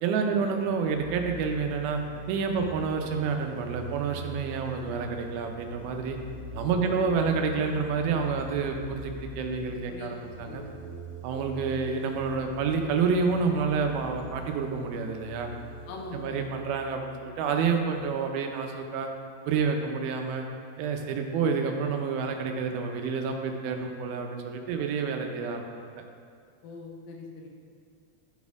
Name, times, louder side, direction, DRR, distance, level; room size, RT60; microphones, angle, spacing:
voice 1, 0.0-2.0 2.3-6.2 6.5-10.7 11.2-15.5 16.1-19.1 19.5-20.4 20.8-25.8, right 5 dB, 85° right, 4 dB, 2.6 m, -29 dB
sound 1, 0.8-18.2, right 1 dB, 50° right, 2.3 m, -43 dB
voice 2, 6.7-7.1 9.9-10.2 10.4-10.6 15.9-16.4 26.6-27.5, left 4 dB, 80° left, 0 dB, 2.6 m, -41 dB
12.5 x 4.2 x 3.5 m, 2.2 s
omnidirectional pair, 4.2 m